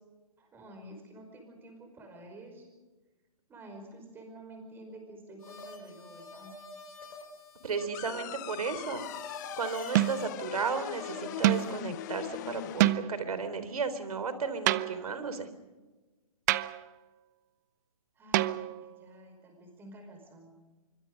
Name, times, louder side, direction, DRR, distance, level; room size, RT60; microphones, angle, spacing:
voice 1, 0.4-2.7 3.5-6.5 18.2-20.6, right 1 dB, 10° right, 4 dB, 5.2 m, -50 dB
sound 1, 5.4-11.8, left 2 dB, 75° left, 6.1 m, -47 dB
voice 2, 7.6-9.1 9.6-15.5, right 5 dB, 75° right, 12 dB, 3.6 m, -34 dB
sound 2, 7.9-12.9, left 15 dB, 30° left, 0.6 m, -40 dB
sound 3, 8.1-8.5 9.9-10.4 11.4-11.8 12.8-13.3 14.7-15.2 16.5-16.9 18.3-19.0, right 15 dB, 30° right, 0.6 m, -28 dB
25.0 x 24.5 x 5.3 m, 1.2 s
hypercardioid pair, 150°, 19 cm